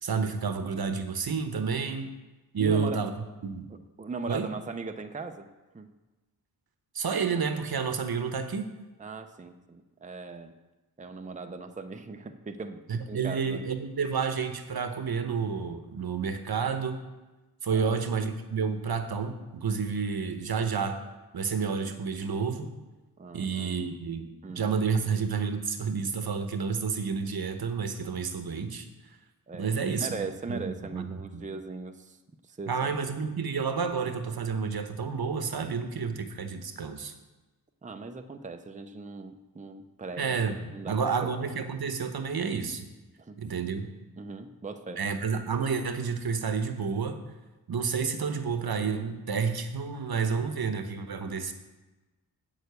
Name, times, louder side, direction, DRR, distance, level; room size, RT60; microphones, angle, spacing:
voice 1, 0.0-2.1 2.5-3.1 3.4-3.7 4.3-4.5 6.9-8.7 12.9-17.0 17.6-21.0 21.3-22.7 23.3-24.3 24.5-28.9 29.5-31.4 32.7-37.1 40.2-42.9 43.4-43.9 45.0-47.2 47.7-51.5, right 5 dB, 70° right, 8 dB, 1.0 m, -30 dB
voice 2, 2.6-3.0 3.7-5.5 5.7-5.9 9.0-10.5 11.0-12.8 13.1-13.7 17.7-18.0 23.2-23.9 24.4-24.7 29.5-32.2 32.5-32.9 37.8-40.4 40.7-41.3 43.2-43.4 44.2-45.0, right 4 dB, 20° right, 7 dB, 0.6 m, -39 dB
8.1 x 6.7 x 8.1 m, 1.1 s
wide cardioid pair, 110°, 39 cm